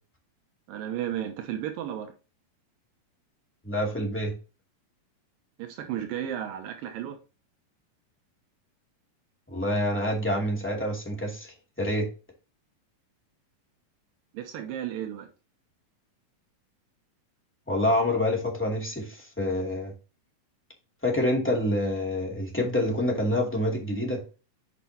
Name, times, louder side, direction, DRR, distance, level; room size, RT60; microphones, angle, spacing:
voice 1, 0.7-2.1 5.6-7.2 14.3-15.3, right 10 dB, 80° right, 2.6 m, -33 dB
voice 2, 3.6-4.4 9.5-12.1 17.7-19.9 21.0-24.2, left 1 dB, 5° left, 1.7 m, -27 dB
8.3 x 5.3 x 2.8 m
omnidirectional pair, 4.1 m